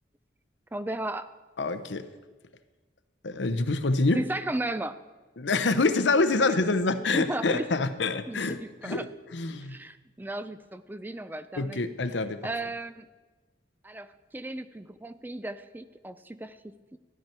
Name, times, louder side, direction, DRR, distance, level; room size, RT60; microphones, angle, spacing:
voice 1, 0.7-1.3 4.1-5.0 6.6-6.7 7.1-7.7 8.3-9.1 9.6-11.8 12.4-13.1 13.8-17.0, right 1 dB, 10° right, 12 dB, 0.4 m, -35 dB
voice 2, 1.6-2.1 3.2-4.2 5.4-9.8 11.6-12.4, left 3 dB, 75° left, 11 dB, 0.8 m, -26 dB
13.5 x 12.0 x 4.4 m, 1.3 s
head